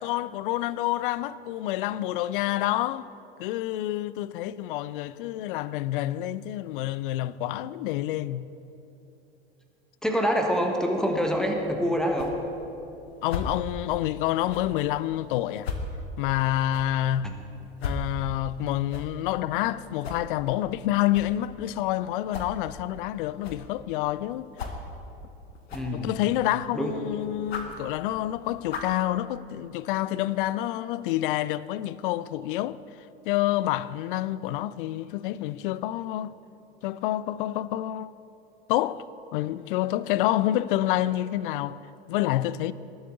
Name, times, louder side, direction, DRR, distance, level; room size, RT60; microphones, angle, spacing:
voice 1, 0.0-3.1 3.4-8.5 13.2-15.7 16.2-17.4 17.8-24.5 25.9-32.8 33.2-36.3 36.8-38.1 38.7-39.0 39.3-41.8 42.1-42.7, left 14 dB, 55° left, 0.4 m, -28 dB
voice 2, 10.0-12.3 17.2-17.3 25.7-26.1 26.7-26.9, equal, ahead, 1.4 m, -26 dB
sound 1, 11.0-29.0, left 3 dB, 75° left, 1.2 m, -40 dB
19.0 x 7.9 x 3.9 m
figure-of-eight pair, 80°, 31 cm